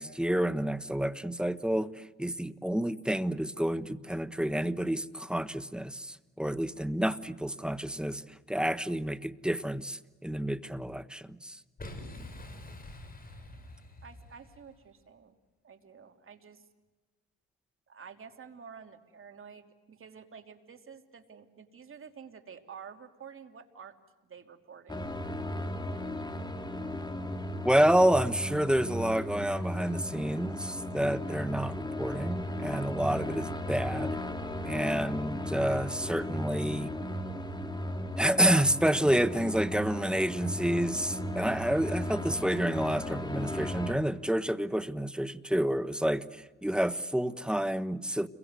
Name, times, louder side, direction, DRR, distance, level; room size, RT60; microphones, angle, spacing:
voice 1, 0.0-8.2 8.5-11.6 27.6-34.2 34.7-36.9 38.2-48.3, right 1 dB, 5° right, 13 dB, 1.1 m, -29 dB
Boom, 11.8-14.8, left 1 dB, 30° left, 5.8 m, -46 dB
voice 2, 14.0-15.4 15.6-16.7 17.9-23.9 24.2-25.1, right 6 dB, 45° right, 5 dB, 3.0 m, -50 dB
sound 1, 24.9-43.9, left 1 dB, 15° left, 2.9 m, -36 dB
30.0 x 23.0 x 8.1 m, 1.2 s
cardioid pair, 90°, 30 cm